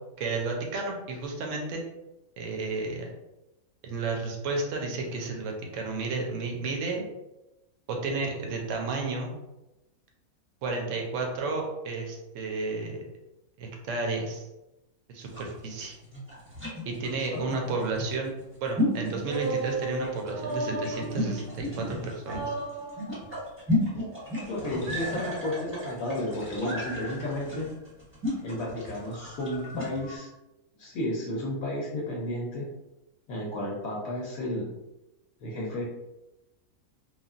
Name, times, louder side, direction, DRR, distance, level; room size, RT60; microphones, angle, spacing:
voice 1, 0.2-1.8 2.4-3.1 3.8-7.0 7.9-9.3 10.6-13.0 13.6-14.5 15.1-15.9 16.9-18.3 18.6-22.5, right 3 dB, 65° right, 1 dB, 0.9 m, -32 dB
sound 1, 15.2-30.0, left 2 dB, 10° right, 0.8 m, -34 dB
sound 2, 19.2-21.9 22.2-23.3 24.8-25.8 26.7-27.5 28.9-30.2, right 2 dB, 85° right, 1.2 m, -36 dB
voice 2, 24.5-27.7 28.4-30.3 30.8-32.7 33.3-34.7 35.4-35.8, left 1 dB, 75° left, -3 dB, 1.1 m, -32 dB
3.2 x 2.3 x 2.4 m, 0.96 s
omnidirectional pair, 1.5 m